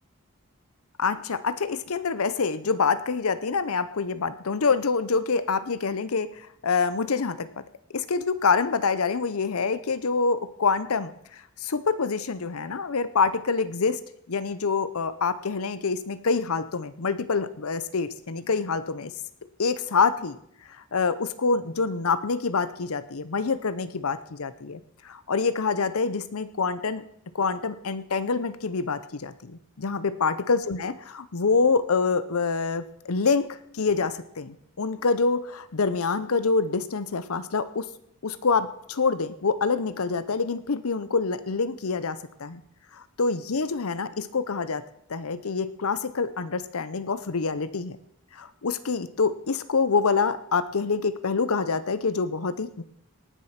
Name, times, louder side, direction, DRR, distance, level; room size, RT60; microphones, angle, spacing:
voice 1, 1.0-7.6 7.9-14.0 14.3-19.1 19.6-20.4 20.7-24.8 25.0-27.0 27.3-37.9 38.2-42.6 42.9-44.8 45.1-48.0 48.3-52.8, left 4 dB, 80° left, 14 dB, 0.7 m, -26 dB
18.5 x 7.7 x 5.8 m, 0.73 s
head